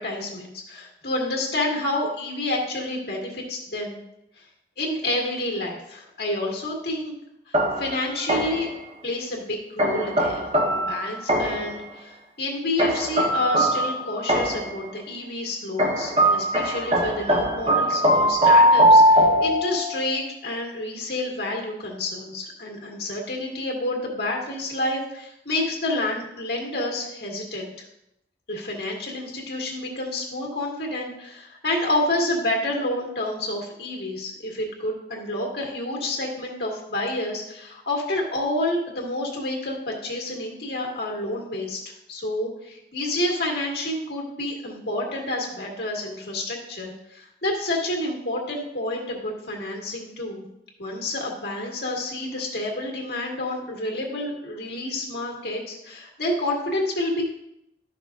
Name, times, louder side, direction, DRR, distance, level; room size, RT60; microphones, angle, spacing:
voice 1, 0.0-4.0 4.4-4.5 4.8-7.2 7.5-8.7 9.0-10.5 10.7-27.7 28.5-41.8 42.1-50.5 50.8-57.3, left 1 dB, 60° left, -1 dB, 1.9 m, -29 dB
sound 1, 7.5-8.7 9.8-11.8 12.8-14.8 15.8-20.1, equal, 35° right, 1.0 m, -20 dB
12.5 x 5.9 x 2.5 m, 0.83 s
head